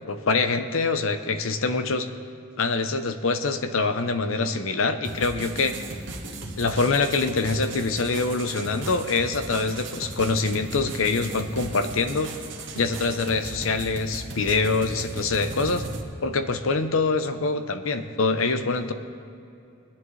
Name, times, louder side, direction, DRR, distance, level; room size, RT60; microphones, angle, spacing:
voice 1, 0.1-2.1 2.6-5.8 6.6-12.3 12.7-15.9 16.2-18.9, left 3 dB, 75° left, 9 dB, 0.7 m, -25 dB
sound 1, 5.0-16.0, right 2 dB, 60° right, 1.4 m, -37 dB
21.0 x 9.9 x 3.2 m, 2.7 s
head